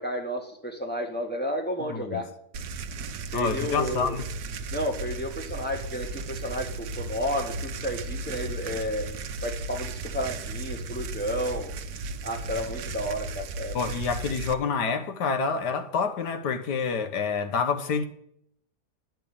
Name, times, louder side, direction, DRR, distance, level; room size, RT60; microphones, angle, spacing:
voice 1, 0.0-2.3 3.3-4.2 4.7-9.1 9.4-11.7 12.2-13.8, equal, 5° left, 1.7 m, -32 dB
voice 2, 1.8-2.2 3.3-4.2 13.7-18.0, left 5 dB, 80° left, 1.7 m, -28 dB
sound 1, 2.5-14.5, right 3 dB, 70° right, 1.3 m, -35 dB
10.5 x 6.5 x 8.7 m
omnidirectional pair, 1.8 m